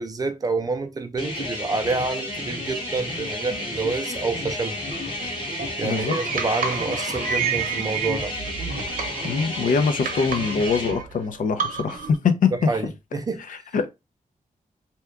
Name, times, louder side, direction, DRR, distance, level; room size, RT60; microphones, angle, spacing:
voice 1, 0.0-4.8 5.8-8.3 12.5-13.4, right 3 dB, 30° right, 0.4 m, -28 dB
sound 1, 1.2-10.9, left 1 dB, 35° left, 1.3 m, -31 dB
sound 2, 4.9-12.2, right 6 dB, 85° right, 0.7 m, -31 dB
voice 2, 5.8-6.2 8.9-12.5 13.5-13.9, left 5 dB, 75° left, 0.5 m, -24 dB
2.8 x 2.3 x 3.5 m
wide cardioid pair, 180°, 14 cm